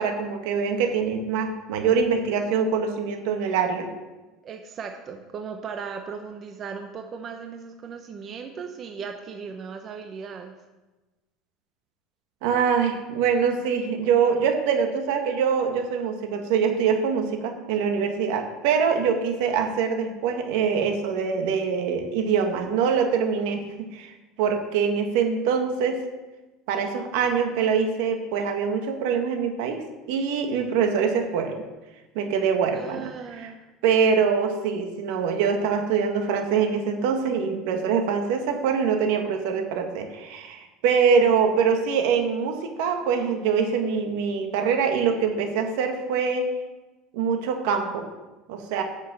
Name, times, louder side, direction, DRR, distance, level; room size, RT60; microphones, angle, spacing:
voice 1, 0.0-3.9 12.4-26.0 26.7-29.8 30.1-31.6 32.2-33.1 33.4-33.5 33.8-46.5 47.1-48.1 48.5-48.8, right 6 dB, 75° right, 4 dB, 1.8 m, -24 dB
voice 2, 4.4-10.6 32.7-33.6, right 6 dB, 35° right, 5 dB, 0.9 m, -37 dB
9.4 x 6.5 x 7.6 m, 1.1 s
supercardioid pair, 135°, 0 cm